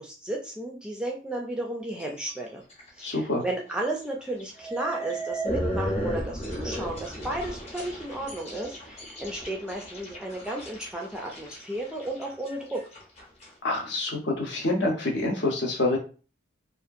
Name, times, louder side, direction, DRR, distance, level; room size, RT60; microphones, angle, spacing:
voice 1, 0.0-2.6 2.9-12.8, right 1 dB, 5° right, -1 dB, 0.3 m, -33 dB
sound 1, 2.0-2.3 2.7-3.1 3.5-3.6 4.4-13.5, equal, 30° left, 0.7 m, -35 dB
voice 2, 3.0-3.4 13.6-16.0, left 2 dB, 65° left, 0 dB, 0.7 m, -26 dB
2.7 x 2.4 x 2.5 m, 0.36 s
head